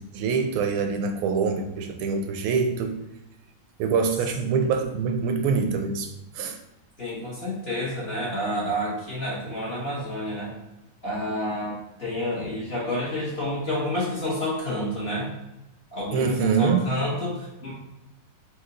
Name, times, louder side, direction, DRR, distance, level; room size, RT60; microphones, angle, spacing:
voice 1, 0.1-3.0 3.8-6.1 6.3-6.6 16.1-16.9, right 5 dB, 85° right, 6 dB, 1.5 m, -24 dB
voice 2, 7.0-10.5 11.0-15.3 15.9-17.7, left 1 dB, 35° left, -7 dB, 1.2 m, -29 dB
4.4 x 2.7 x 3.8 m, 0.93 s
omnidirectional pair, 2.3 m